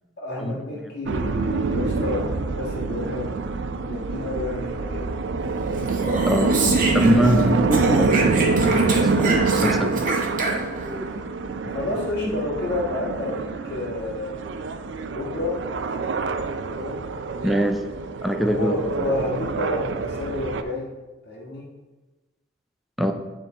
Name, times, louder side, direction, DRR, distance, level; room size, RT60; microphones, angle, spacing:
voice 1, 0.2-5.1 11.6-14.3 15.1-15.6 16.7-17.0 18.5-20.9 21.2-21.7, left 2 dB, 60° left, -4 dB, 1.6 m, -30 dB
sound 1, 1.1-20.6, right 3 dB, 70° right, 0.4 m, -25 dB
Speech, 5.8-7.4 7.7-10.9, right 3 dB, 45° right, 1.1 m, -27 dB
voice 2, 6.2-6.6 6.9-10.1 10.7-11.2 11.6-11.7 12.2-12.3 17.4-17.8 18.2-19.0 23.0-23.1, equal, ahead, 6 dB, 0.4 m, -24 dB
9.8 x 3.7 x 3.9 m, 1.1 s
head